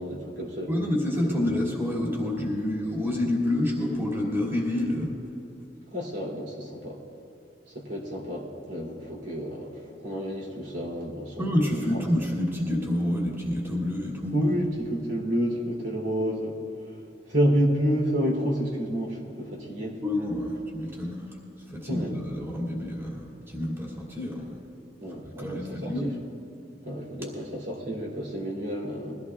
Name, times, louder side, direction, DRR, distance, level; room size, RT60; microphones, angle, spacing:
voice 1, 0.0-0.7 1.3-1.6 5.9-7.0 7.7-12.1 14.3-16.6 16.8-16.9 17.3-20.0 21.9-22.2 25.0-26.1 26.8-29.1, equal, 70° right, -2 dB, 3.1 m, -29 dB
voice 2, 0.7-5.1 11.4-14.5 20.0-21.4 21.7-24.6 25.4-26.1, left 1 dB, 15° right, -4 dB, 2.5 m, -28 dB
22.5 x 15.5 x 2.4 m, 2.9 s
head